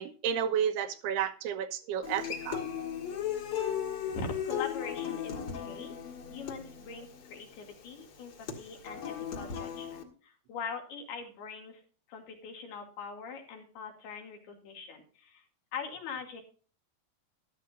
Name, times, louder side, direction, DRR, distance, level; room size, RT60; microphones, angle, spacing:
voice 1, 0.0-2.6, right 8 dB, 90° right, 7 dB, 3.1 m, -31 dB
Human voice / Acoustic guitar, 2.0-10.0, left 8 dB, 50° left, 1.9 m, -36 dB
voice 2, 3.9-5.9 6.3-11.8 12.1-15.4 15.7-16.4, left 5 dB, 80° left, 2 dB, 4.4 m, -42 dB
14.5 x 12.0 x 2.6 m, 0.39 s
omnidirectional pair, 4.5 m